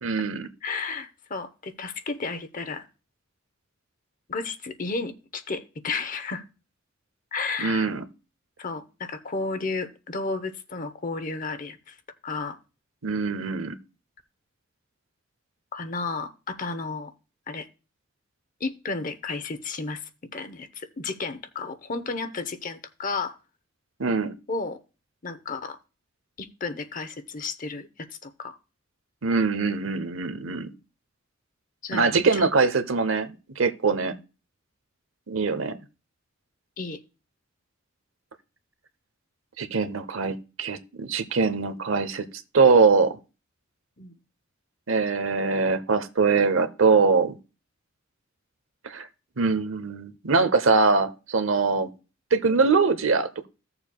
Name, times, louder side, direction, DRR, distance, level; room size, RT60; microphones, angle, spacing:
voice 1, 0.0-0.5 7.6-8.0 13.0-13.8 24.0-24.4 29.2-30.7 31.9-34.1 35.3-35.8 39.6-42.3 42.5-43.2 44.9-47.3 48.8-49.1 49.4-51.9 52.3-53.5, right 4 dB, 80° right, 0.9 m, -23 dB
voice 2, 0.6-2.8 4.3-6.4 7.3-7.9 8.6-12.0 12.2-12.6 15.7-17.1 17.5-17.7 18.6-20.0 20.3-23.4 24.5-24.8 25.2-25.8 26.4-28.6 30.4-30.8 31.8-32.5 34.0-34.2 36.8-37.0 44.0-44.2 51.7-51.9, left 4 dB, 40° left, 0.8 m, -33 dB
15.5 x 6.9 x 2.3 m
head